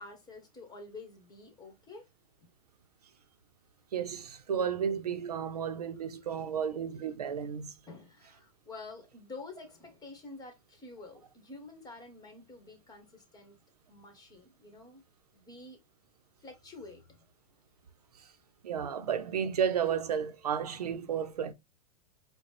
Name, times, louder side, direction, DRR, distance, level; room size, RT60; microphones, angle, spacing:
voice 1, 0.0-2.1 2.4-2.5 6.5-6.6 7.9-13.6 13.9-15.0 15.3-15.8 16.4-17.3, left 3 dB, 20° left, 1.4 m, -49 dB
voice 2, 3.9-7.7 18.6-21.5, right 7 dB, 90° right, 0.6 m, -32 dB
4.8 x 2.2 x 3.2 m
hypercardioid pair, 105°, 19 cm